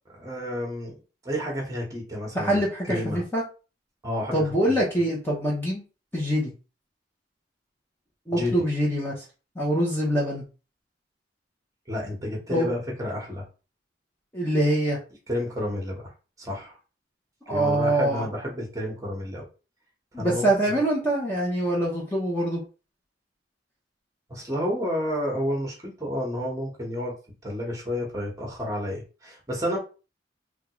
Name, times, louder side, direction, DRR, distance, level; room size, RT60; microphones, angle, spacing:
voice 1, 0.1-0.9 1.2-3.2 4.0-4.8 8.3-8.5 11.9-13.4 15.3-16.1 16.4-16.7 17.5-19.4 20.1-20.5 24.3-27.1 27.4-29.8, equal, 15° right, -1 dB, 1.0 m, -30 dB
voice 2, 2.3-3.4 4.3-5.8 6.1-6.5 8.3-9.1 9.6-10.4 12.5-12.7 14.3-15.0 17.5-18.2 20.1-22.6, right 1 dB, 10° left, -4 dB, 0.7 m, -24 dB
3.6 x 2.3 x 2.9 m, 0.33 s
head